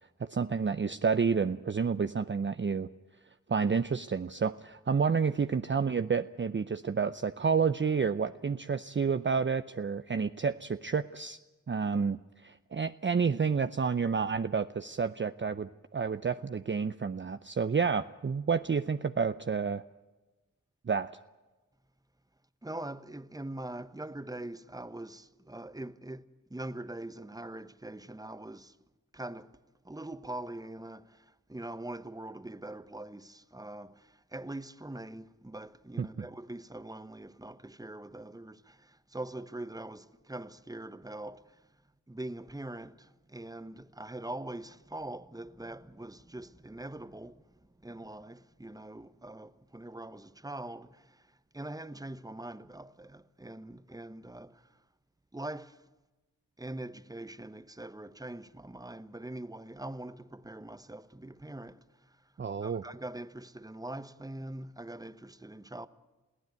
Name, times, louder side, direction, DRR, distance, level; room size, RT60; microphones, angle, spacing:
voice 1, 0.2-2.9 3.5-11.4 11.7-19.8 20.9-21.1 36.0-36.1 62.4-62.8, right 5 dB, 35° right, 0.6 m, -30 dB
voice 2, 22.6-26.2 26.5-28.8 29.1-41.7 42.1-54.8 55.3-55.8 56.6-65.9, right 1 dB, 10° right, 1.1 m, -43 dB
22.5 x 15.5 x 9.4 m
cardioid pair, 45°, 33 cm